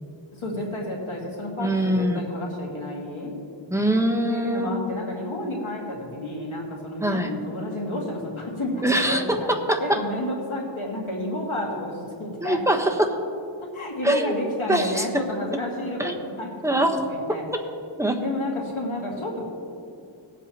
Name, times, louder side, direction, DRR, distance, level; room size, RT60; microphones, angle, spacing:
voice 1, 0.3-3.4 4.3-9.4 9.8-12.6 13.6-17.4 18.2-19.4, left 1 dB, 85° left, -2 dB, 2.2 m, -31 dB
voice 2, 1.6-2.3 3.7-4.8 7.0-7.3 8.8-10.0 12.4-13.1 14.0-14.4 14.7-15.1 16.0-16.1 16.6-17.0 17.3-17.6 18.0-18.2, right 1 dB, 5° right, 3 dB, 1.1 m, -23 dB
18.5 x 8.3 x 3.0 m, 2.5 s
wide cardioid pair, 45°, 47 cm